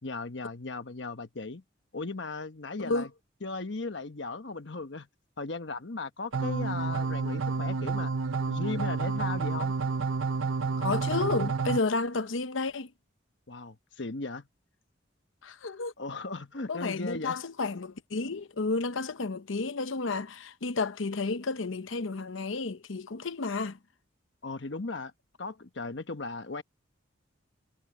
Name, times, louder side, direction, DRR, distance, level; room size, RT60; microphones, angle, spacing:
voice 1, 0.0-1.6 1.9-3.1 3.4-5.1 5.4-8.1 8.5-9.7 13.5-14.5 16.0-17.4 24.4-25.1 25.4-26.6, left 3 dB, 60° left, 1.2 m, -37 dB
sound 1, 6.3-11.8, right 4 dB, 85° right, 0.8 m, -30 dB
voice 2, 10.8-12.9 15.4-15.9 16.7-23.8, left 3 dB, 80° left, 0.8 m, -31 dB
head